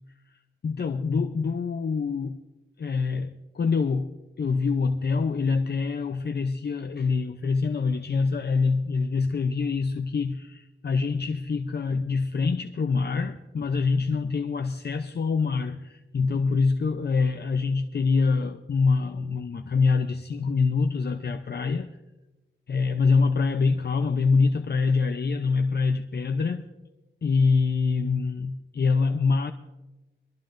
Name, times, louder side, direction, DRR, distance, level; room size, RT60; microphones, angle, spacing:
voice 1, 0.6-2.4 2.8-21.9 22.7-26.6 27.2-29.5, left 4 dB, 50° left, 0.6 m, -25 dB
23.0 x 13.0 x 2.6 m
wide cardioid pair, 85°, 21 cm